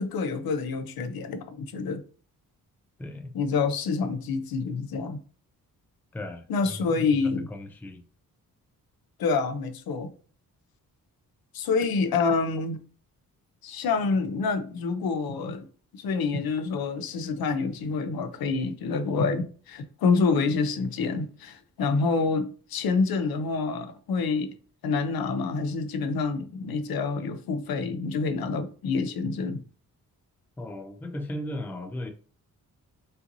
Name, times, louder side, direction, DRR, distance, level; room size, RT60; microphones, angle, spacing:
voice 1, 0.0-2.0 3.3-5.2 6.5-7.5 9.2-10.1 11.5-12.8 13.6-15.6 16.0-24.5 24.8-29.6, left 4 dB, 85° left, 0.7 m, -27 dB
voice 2, 3.0-3.3 6.1-6.9 7.5-8.0 30.6-32.1, left 1 dB, 5° left, 0.3 m, -36 dB
5.5 x 2.6 x 2.7 m
wide cardioid pair, 165°, 35 cm